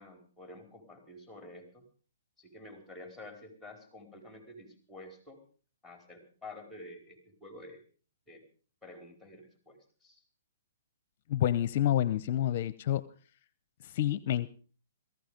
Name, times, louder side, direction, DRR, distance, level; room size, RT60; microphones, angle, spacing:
voice 1, 0.0-1.8 2.4-5.4 5.8-7.8 8.3-8.4 8.8-10.2, left 2 dB, ahead, 5 dB, 4.9 m, -50 dB
voice 2, 11.3-13.0 13.8-14.5, left 12 dB, 50° left, 18 dB, 0.7 m, -28 dB
18.0 x 15.0 x 5.2 m, 0.41 s
hypercardioid pair, 135°, 0 cm